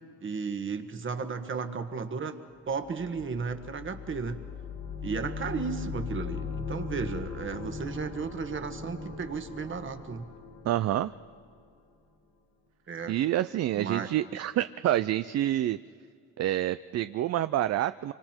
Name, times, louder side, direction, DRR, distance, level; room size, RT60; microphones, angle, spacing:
voice 1, 0.2-2.4 2.7-4.4 5.0-10.2 12.9-13.1 13.7-14.1, right 5 dB, 40° right, 8 dB, 1.6 m, -34 dB
sound 1, 2.8-11.7, left 5 dB, 60° left, 2.8 m, -39 dB
voice 2, 10.6-11.1 13.1-15.8 16.4-18.1, right 13 dB, 55° right, 13 dB, 0.5 m, -27 dB
26.0 x 25.5 x 4.5 m, 2.3 s
cardioid pair, 90°, 30 cm